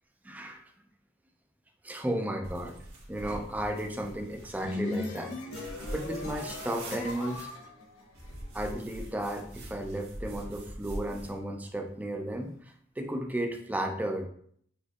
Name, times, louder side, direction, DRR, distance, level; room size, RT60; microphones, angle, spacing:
voice 1, 0.2-0.6 1.8-2.8 3.1-7.5 8.5-14.3, right 1 dB, 10° right, 4 dB, 0.4 m, -34 dB
sound 1, 2.4-4.7 5.5-7.5 8.1-11.4, right 1 dB, 80° right, 1.2 m, -43 dB
sound 2, 4.3-8.6, left 2 dB, 90° left, 1.1 m, -39 dB
6.3 x 2.7 x 2.4 m, 0.63 s
head